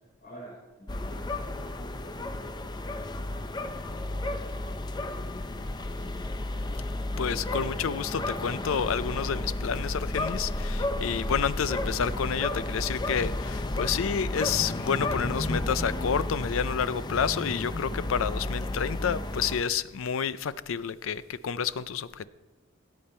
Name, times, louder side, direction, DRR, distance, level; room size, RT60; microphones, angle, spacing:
voice 1, 0.0-6.3, equal, 45° left, -5 dB, 4.3 m, -49 dB
sound 1, 0.9-19.6, left 2 dB, 20° left, 0.5 m, -32 dB
voice 2, 7.2-22.3, left 7 dB, 80° left, 16 dB, 0.5 m, -29 dB
17.0 x 8.6 x 4.3 m, 1.2 s
head